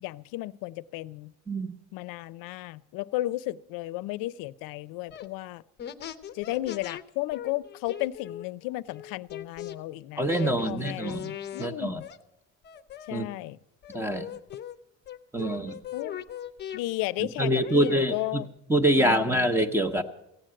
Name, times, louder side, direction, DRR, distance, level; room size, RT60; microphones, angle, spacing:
voice 1, 0.0-1.3 1.9-5.6 6.3-12.1 13.1-13.6 15.9-16.2 16.7-18.5 19.0-19.5, left 17 dB, 85° left, 17 dB, 0.5 m, -34 dB
sound 1, 5.1-5.3 5.8-7.0 7.3-9.7 10.3-11.7 12.0-12.2 12.6-13.5 13.8-14.8 15.1-16.8 17.4-18.5, left 10 dB, 30° left, 0.6 m, -40 dB
voice 2, 10.2-11.3 11.6-12.0 13.1-13.3 13.9-14.3 15.3-15.8 17.4-18.4 18.7-20.0, right 1 dB, 5° right, 11 dB, 0.7 m, -25 dB
15.5 x 9.1 x 7.5 m, 0.86 s
cardioid pair, 160°, 33 cm